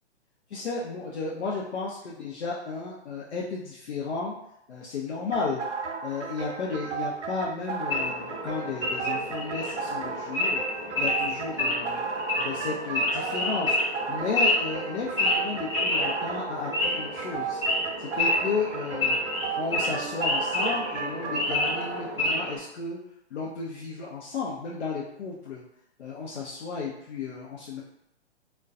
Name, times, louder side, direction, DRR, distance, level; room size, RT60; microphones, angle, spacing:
voice 1, 0.5-4.3 4.7-5.6 6.0-10.6 11.0-12.0 12.3-13.8 14.1-19.2 19.5-23.0 23.3-25.6 26.0-27.8, left 4 dB, 65° left, -4 dB, 0.6 m, -33 dB
sound 1, 5.3-22.0, right 5 dB, 85° right, 0.5 m, -34 dB
Wild animals / Idling, 7.9-22.6, left 1 dB, 10° left, 0.5 m, -29 dB
2.3 x 2.2 x 2.4 m, 0.78 s
figure-of-eight pair, 130°, 35 cm